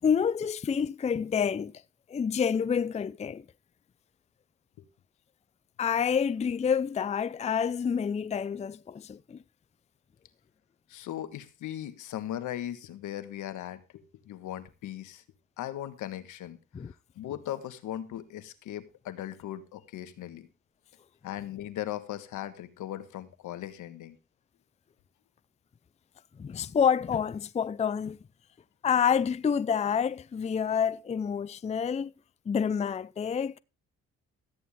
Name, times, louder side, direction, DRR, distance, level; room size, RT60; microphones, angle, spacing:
voice 1, 0.0-1.7 2.1-3.4 5.8-9.4 16.7-16.9 26.4-28.2 28.8-32.1 32.5-33.6, left 7 dB, 20° left, 0.4 m, -28 dB
voice 2, 10.9-15.2 15.6-16.6 16.8-20.5 21.2-24.2, left 12 dB, 80° left, 1.4 m, -38 dB
13.5 x 9.4 x 3.5 m
cardioid pair, 90°, 30 cm